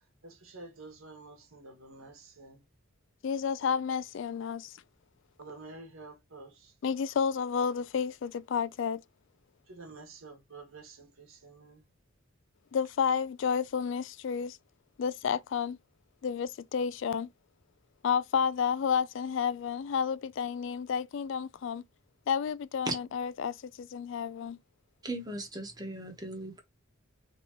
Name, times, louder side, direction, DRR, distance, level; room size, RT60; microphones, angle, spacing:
voice 1, 0.2-2.6 5.4-6.7 9.7-11.8, right 3 dB, 90° right, 1.8 m, -49 dB
voice 2, 3.2-4.8 6.8-9.0 12.7-14.6 15.0-15.8 16.2-17.3 18.0-21.8 22.3-24.6, left 7 dB, 65° left, 0.3 m, -31 dB
voice 3, 25.0-26.6, right 2 dB, 20° right, 1.1 m, -37 dB
3.8 x 3.6 x 3.0 m
head